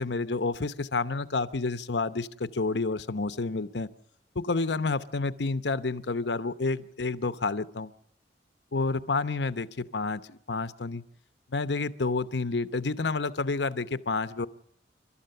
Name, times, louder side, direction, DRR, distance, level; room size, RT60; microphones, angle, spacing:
voice 1, 0.0-3.9 4.3-7.9 8.7-11.0 11.5-14.5, left 3 dB, 80° left, 13 dB, 0.9 m, -29 dB
30.0 x 13.0 x 6.7 m, 0.70 s
head